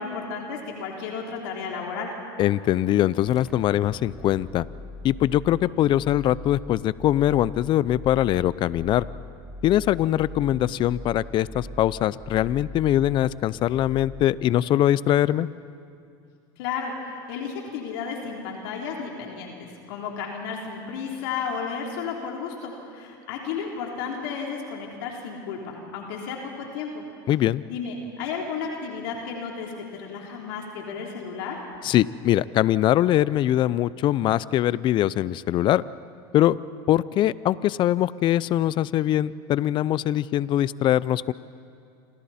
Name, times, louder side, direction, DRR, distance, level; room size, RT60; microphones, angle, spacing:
voice 1, 0.0-2.1 16.6-27.0 27.7-31.6, left 5 dB, 75° left, -1 dB, 3.5 m, -33 dB
voice 2, 2.4-4.7 5.0-9.0 9.6-15.5 27.3-27.6 31.8-35.8 36.3-36.6 36.9-41.3, left 13 dB, 40° left, 19 dB, 0.5 m, -22 dB
sound 1, 3.3-14.7, left 2 dB, 5° right, 1.2 m, -41 dB
28.5 x 27.0 x 4.3 m, 2.5 s
supercardioid pair, 110°, 12 cm